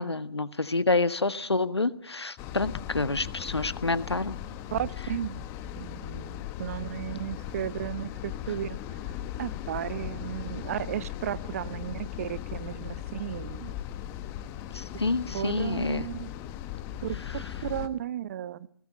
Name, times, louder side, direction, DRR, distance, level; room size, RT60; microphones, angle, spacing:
voice 1, 0.0-4.4 14.7-16.1 17.3-17.5, left 3 dB, 85° left, 13 dB, 1.6 m, -28 dB
sound 1, 2.4-17.9, left 11 dB, 20° left, 1.2 m, -38 dB
voice 2, 4.7-5.5 5.8-8.8 9.4-13.7 15.3-16.3 17.0-18.7, right 10 dB, 35° right, 18 dB, 0.9 m, -34 dB
30.0 x 19.0 x 6.6 m, 0.65 s
figure-of-eight pair, 145°, 13 cm